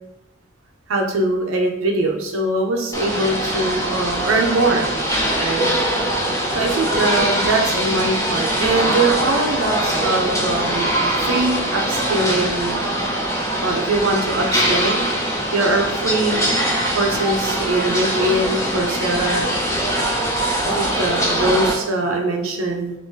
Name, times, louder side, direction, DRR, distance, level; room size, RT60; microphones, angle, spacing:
voice 1, 0.9-4.9 5.4-5.7 6.5-12.8 13.6-15.1 15.5-16.5 16.9-19.5 20.7-22.9, right 2 dB, 85° right, 1 dB, 0.6 m, -22 dB
sound 1, 2.9-21.7, right 1 dB, 15° left, 0.5 m, -22 dB
2.7 x 2.6 x 3.7 m, 0.92 s
head